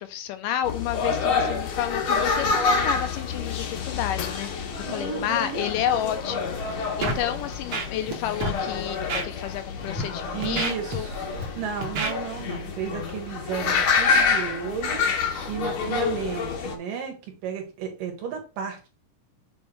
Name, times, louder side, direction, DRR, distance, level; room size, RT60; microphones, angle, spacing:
voice 1, 0.0-11.1, left 11 dB, 80° left, 9 dB, 2.1 m, -31 dB
sound 1, 0.6-16.8, left 5 dB, 65° left, 1.3 m, -27 dB
voice 2, 4.9-5.6 10.3-11.3 11.5-15.0 15.5-18.9, right 7 dB, 75° right, 4 dB, 3.0 m, -33 dB
Scratching (performance technique), 7.0-7.2 7.5-8.1 8.4-8.6 9.1-9.2 9.8-10.0 10.4-11.4 11.8-12.1, right 3 dB, 55° right, 1.9 m, -28 dB
7.1 x 3.2 x 4.6 m, 0.32 s
omnidirectional pair, 3.9 m